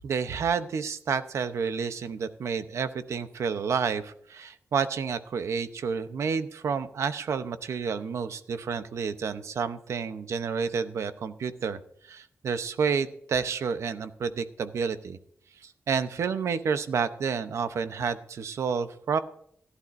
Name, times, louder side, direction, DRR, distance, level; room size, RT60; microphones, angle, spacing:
voice 1, 0.0-11.8 12.1-15.2 15.6-19.2, right 6 dB, 90° right, 10 dB, 0.8 m, -30 dB
16.5 x 11.5 x 2.6 m, 0.66 s
wide cardioid pair, 110°, 5 cm